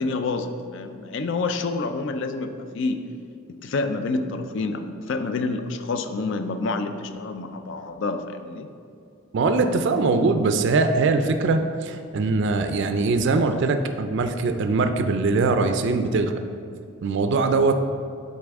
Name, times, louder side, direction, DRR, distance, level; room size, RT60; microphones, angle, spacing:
voice 1, 0.0-3.0 3.5-8.7, left 3 dB, 60° left, 9 dB, 0.4 m, -28 dB
voice 2, 9.3-16.3 17.0-17.8, right 3 dB, 55° right, 7 dB, 0.4 m, -22 dB
8.5 x 4.1 x 3.5 m, 2.5 s
head